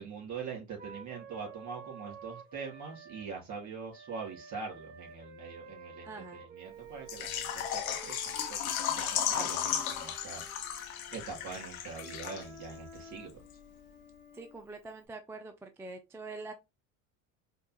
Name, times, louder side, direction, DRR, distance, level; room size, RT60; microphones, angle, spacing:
voice 1, 0.0-10.4 11.1-13.4, right 5 dB, 45° right, 2.7 m, -43 dB
Wind instrument woodwind instrument, 0.8-3.3 3.9-8.6 9.2-14.6, right 3 dB, 20° right, 1.9 m, -51 dB
voice 2, 6.0-6.4 14.3-16.5, right 3 dB, 5° right, 0.3 m, -44 dB
Water / Liquid, 7.1-12.7 13.0-13.1 13.5-13.6, left 9 dB, 85° left, 1.0 m, -35 dB
5.2 x 2.4 x 2.9 m
hypercardioid pair, 85°, 41 cm